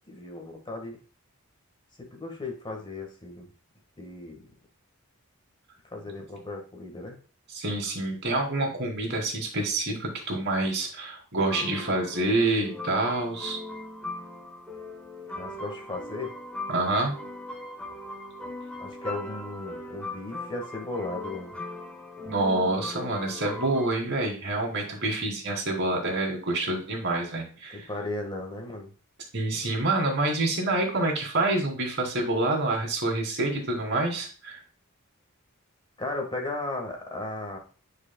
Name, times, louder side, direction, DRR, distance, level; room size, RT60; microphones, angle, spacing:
voice 1, 0.1-1.0 2.0-3.5 4.0-4.5 5.9-7.2 15.4-16.4 18.8-21.6 27.7-28.9 36.0-37.6, left 2 dB, 20° left, 2 dB, 1.6 m, -36 dB
voice 2, 7.5-13.6 16.7-17.1 22.3-27.9 29.3-34.6, right 2 dB, 55° right, 1 dB, 2.8 m, -27 dB
sound 1, 11.4-23.9, left 2 dB, 5° left, 1.3 m, -39 dB
9.7 x 5.0 x 2.3 m, 0.39 s
head